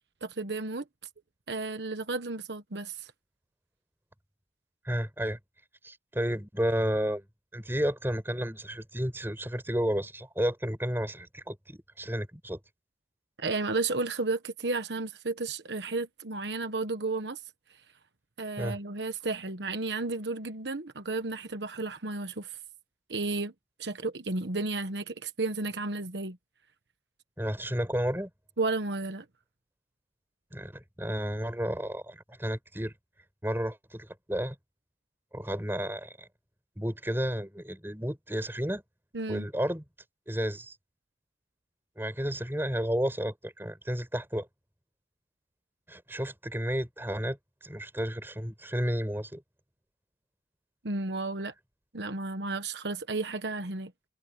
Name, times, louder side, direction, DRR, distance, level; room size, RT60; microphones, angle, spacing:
voice 1, 0.2-0.8 1.5-3.1 13.4-17.4 18.4-22.5 23.1-23.5 23.8-26.4 28.6-29.2 39.1-39.5 50.8-51.5 51.9-53.9, right 3 dB, 80° right, 1.2 m, -33 dB
voice 2, 4.9-5.4 5.8-7.2 7.5-12.6 18.6-18.8 27.4-28.3 30.5-32.9 33.4-34.6 35.3-36.3 36.8-38.8 39.3-39.8 40.3-40.8 42.0-44.5 45.9-47.4 47.6-49.4, equal, 15° right, 5.5 m, -32 dB
head